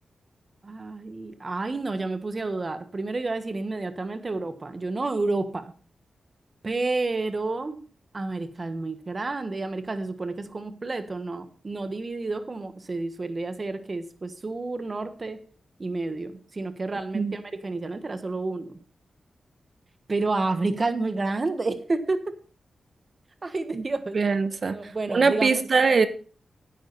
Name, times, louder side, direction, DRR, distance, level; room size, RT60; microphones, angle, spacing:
voice 1, 0.6-5.7 6.6-7.8 8.1-15.4 15.8-18.8 20.1-22.2 23.4-24.2 24.7-25.6, right 3 dB, 40° right, 10 dB, 1.4 m, -30 dB
voice 2, 24.1-26.1, right 4 dB, 55° right, 11 dB, 1.0 m, -22 dB
10.5 x 8.9 x 4.2 m, 0.39 s
cardioid pair, 70°, 0 cm